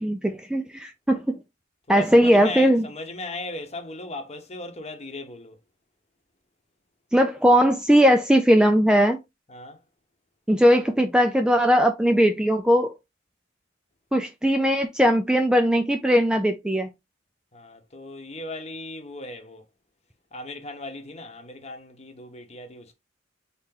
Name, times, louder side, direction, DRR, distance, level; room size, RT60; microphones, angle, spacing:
voice 1, 0.0-1.4 1.9-2.8 7.1-9.2 10.5-12.9 14.1-16.9, equal, 5° right, 0.3 m, -19 dB
voice 2, 1.9-5.6 9.5-9.8 17.5-19.7 20.3-22.9, left 2 dB, 30° left, 0.9 m, -37 dB
4.3 x 2.9 x 3.7 m
head